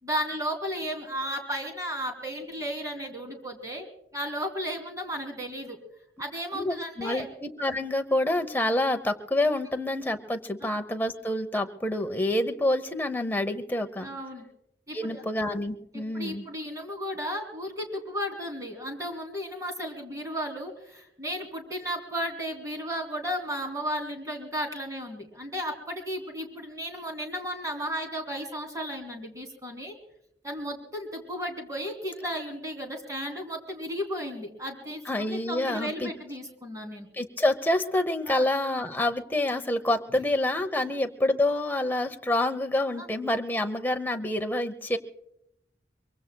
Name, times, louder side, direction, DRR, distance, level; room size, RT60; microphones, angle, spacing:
voice 1, 0.0-5.8 6.2-7.3 14.0-14.5 14.9-15.2 15.9-29.9 30.4-37.1 38.3-38.4 40.7-40.9 43.0-43.1, equal, 20° right, 3 dB, 3.0 m, -34 dB
voice 2, 6.5-14.1 14.9-16.4 35.1-36.1 37.1-45.0, left 1 dB, 10° left, 5 dB, 0.8 m, -27 dB
23.5 x 23.0 x 2.3 m, 0.76 s
head